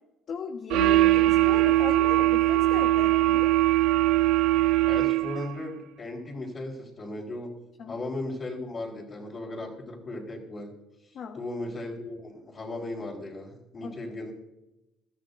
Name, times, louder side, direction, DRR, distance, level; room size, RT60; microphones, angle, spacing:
voice 1, 0.3-3.5 7.8-7.9 11.1-11.4 13.8-13.9, left 6 dB, 50° left, 4 dB, 1.4 m, -37 dB
sound 1, 0.7-5.5, right 16 dB, 75° right, 0.5 m, -21 dB
voice 2, 4.9-7.6 7.9-10.7 11.0-14.3, left 2 dB, 35° left, -6 dB, 3.8 m, -36 dB
22.5 x 14.0 x 2.7 m, 0.96 s
cardioid pair, 110°, 0 cm